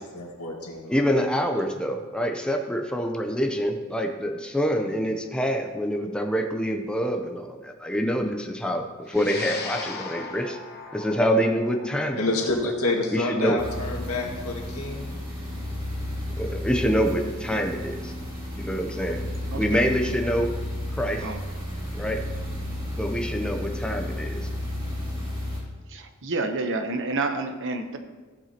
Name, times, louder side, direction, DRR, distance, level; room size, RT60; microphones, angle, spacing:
voice 1, 0.1-0.9 12.2-15.1, left 2 dB, 75° left, -1 dB, 1.9 m, -28 dB
voice 2, 0.9-10.6 10.9-12.2 13.1-13.6 16.4-18.1 18.6-19.2 19.6-20.5 21.0-21.2 21.9-22.2 22.9-24.5, equal, 5° left, 3 dB, 0.6 m, -26 dB
sound 1, 9.1-17.6, left 4 dB, 45° left, 1.1 m, -41 dB
sound 2, 13.6-25.6, left 1 dB, 25° right, 2.9 m, -32 dB
voice 3, 19.5-19.8 21.2-21.4 25.9-28.0, right 3 dB, 60° right, 6 dB, 0.9 m, -29 dB
14.5 x 7.9 x 2.9 m, 1.4 s
head